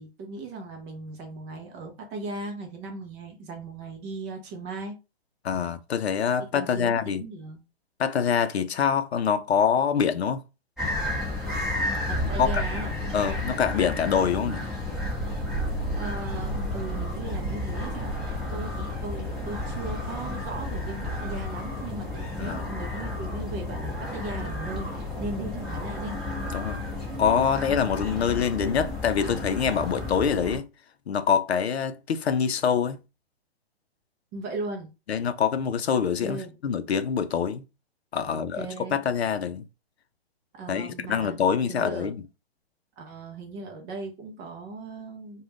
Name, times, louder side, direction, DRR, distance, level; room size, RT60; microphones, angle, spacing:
voice 1, 0.0-5.0 6.5-7.6 12.1-12.9 15.7-26.2 34.3-34.9 36.2-36.5 38.3-39.0 40.5-41.4 41.7-42.1 43.0-45.4, right 3 dB, 15° right, 0.4 m, -38 dB
voice 2, 5.4-7.2 8.0-10.4 12.4-12.6 13.1-14.6 22.4-22.7 26.5-26.9 27.2-30.7 31.1-33.0 35.1-37.6 38.1-39.7 40.7-42.2, left 7 dB, 90° left, 0.5 m, -25 dB
sound 1, 10.8-30.6, left 2 dB, ahead, 0.8 m, -32 dB
sound 2, 12.1-21.4, right 3 dB, 35° right, 0.9 m, -35 dB
2.4 x 2.2 x 3.3 m
hypercardioid pair, 135°, 31 cm